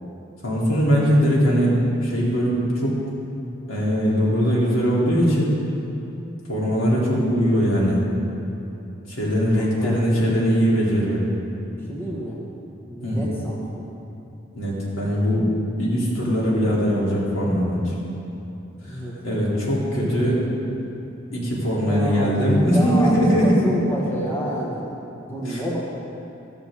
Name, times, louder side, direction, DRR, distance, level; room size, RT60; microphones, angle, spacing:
voice 1, 0.4-3.0 3.7-5.5 6.5-8.0 9.1-11.2 13.0-13.2 14.6-15.5 15.8-17.9 18.9-19.0 19.2-20.4 21.3-23.6 25.5-25.6, equal, 80° left, -6 dB, 3.5 m, -21 dB
voice 2, 11.7-12.4 12.9-13.9 18.9-19.1 21.8-24.9 25.2-25.8, right 1 dB, 10° left, -5 dB, 1.8 m, -28 dB
14.5 x 13.5 x 3.8 m, 2.9 s
head